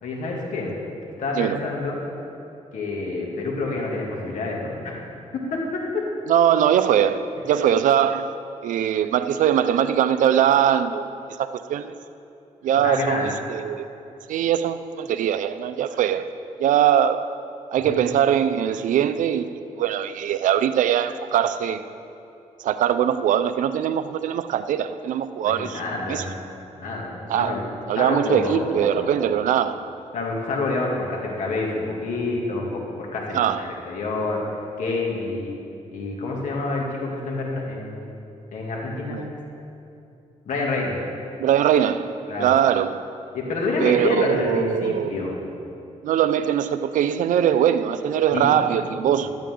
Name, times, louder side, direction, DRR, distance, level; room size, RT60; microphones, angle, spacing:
voice 1, 0.0-0.7 1.2-2.0 2.7-5.0 5.5-6.0 12.8-13.3 17.8-18.0 25.4-26.3 26.7-27.6 27.9-29.1 30.1-34.4 34.8-35.5 35.9-38.1 38.5-39.2 40.5-41.0 42.3-42.5 43.3-45.4 48.3-49.2, left 3 dB, 75° left, 2.6 m, -28 dB
voice 2, 6.3-8.3 8.6-11.1 11.4-11.9 12.6-13.9 14.3-16.3 16.6-17.2 17.7-19.5 19.8-21.8 22.6-25.8 26.1-26.2 27.3-27.6 27.9-29.8 33.3-33.6 39.1-39.3 41.4-42.1 42.4-43.0 43.8-45.1 46.0-49.3, right 9 dB, 85° right, 0.5 m, -21 dB
15.5 x 12.0 x 3.8 m
cardioid pair, 90°, 13 cm